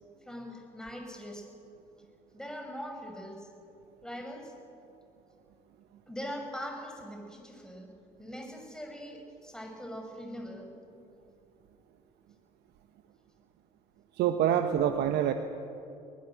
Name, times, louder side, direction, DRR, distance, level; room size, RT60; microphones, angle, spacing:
voice 1, 0.2-1.5 2.3-3.5 4.0-4.6 6.1-10.7, equal, 5° left, 2 dB, 6.1 m, -42 dB
voice 2, 14.2-15.3, right 10 dB, 60° right, 7 dB, 1.2 m, -26 dB
22.0 x 19.5 x 7.8 m, 2.6 s
hypercardioid pair, 60°, 19 cm